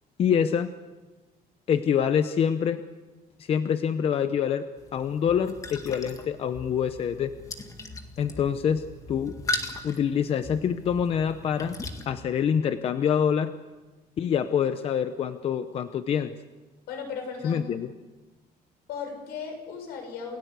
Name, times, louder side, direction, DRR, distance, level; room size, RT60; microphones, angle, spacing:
voice 1, 0.2-0.7 1.7-2.8 3.4-4.6 4.9-7.3 8.2-9.3 9.8-11.8 12.1-13.5 14.2-16.3 17.4-17.9, left 8 dB, 35° left, 10 dB, 0.8 m, -25 dB
sound 1, 4.8-12.1, left 2 dB, 20° left, 1.9 m, -38 dB
voice 2, 16.9-17.6 18.9-20.4, left 6 dB, 80° left, 4 dB, 6.8 m, -36 dB
29.0 x 17.0 x 8.2 m, 1.2 s
cardioid pair, 175°, 16 cm